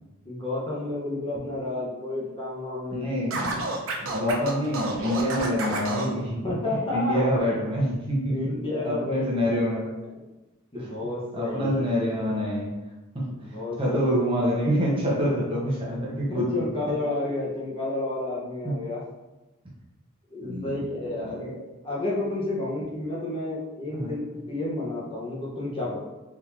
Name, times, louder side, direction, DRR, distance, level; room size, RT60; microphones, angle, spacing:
voice 1, 0.3-3.0 6.4-7.3 8.3-9.4 10.0-10.1 10.7-11.8 13.3-14.1 16.3-19.0 20.3-21.4 21.8-24.2 24.5-26.0, left 2 dB, 25° left, -5 dB, 0.7 m, -31 dB
voice 2, 2.9-3.6 4.0-8.6 8.8-9.9 10.7-10.9 11.3-12.7 13.1-16.7 18.6-18.8 20.4-20.8 21.2-21.6 23.9-24.1, equal, 25° right, -5 dB, 0.8 m, -27 dB
Scratching (performance technique), 3.3-6.1, right 2 dB, 75° right, 0.7 m, -30 dB
3.5 x 2.6 x 3.0 m, 1.1 s
head